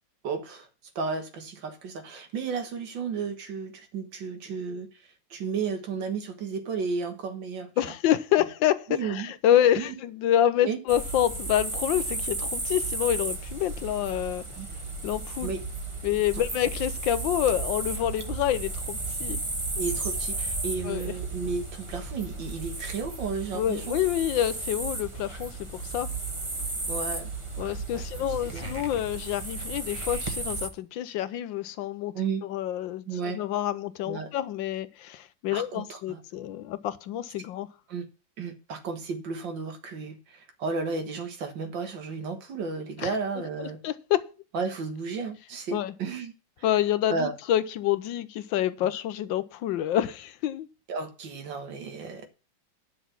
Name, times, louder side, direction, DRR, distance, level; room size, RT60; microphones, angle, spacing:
voice 1, 0.2-0.7 1.0-4.9 5.3-7.9 8.9-9.3 9.8-9.9 10.6-10.8 14.6-14.7 15.4-15.6 19.8-24.0 26.9-27.3 27.6-28.7 32.1-32.4 33.1-33.4 34.1-34.3 35.5-36.2 37.9-38.1 38.4-43.8 44.5-46.3 47.1-47.3 50.9-52.3, right 5 dB, 85° right, 2.1 m, -33 dB
voice 2, 7.8-14.4 15.0-15.5 16.0-19.4 20.8-21.1 23.5-26.1 27.6-32.1 32.4-37.7 43.0-43.1 43.6-44.2 45.7-45.9 46.6-50.7, left 11 dB, 90° left, 1.5 m, -27 dB
sound 1, 10.9-30.7, right 3 dB, 20° right, 1.1 m, -34 dB
10.0 x 6.1 x 5.8 m
omnidirectional pair, 2.0 m